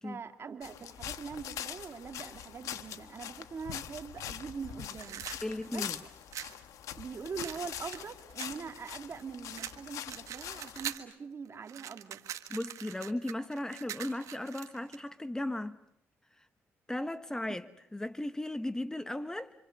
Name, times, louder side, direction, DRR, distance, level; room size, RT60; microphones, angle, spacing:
voice 1, 0.0-5.3 5.7-5.8 7.0-12.2, right 5 dB, 50° right, 2.7 m, -43 dB
sound 1, 0.6-11.0, left 10 dB, 85° left, 1.2 m, -43 dB
sound 2, 4.9-6.6 7.4-9.2 9.5-11.1 11.5-15.0, right 10 dB, 75° right, 1.6 m, -43 dB
voice 2, 5.4-6.0 12.5-15.8 16.9-19.5, left 1 dB, 10° left, 1.1 m, -36 dB
27.0 x 26.5 x 6.7 m
cardioid pair, 75°, 5 cm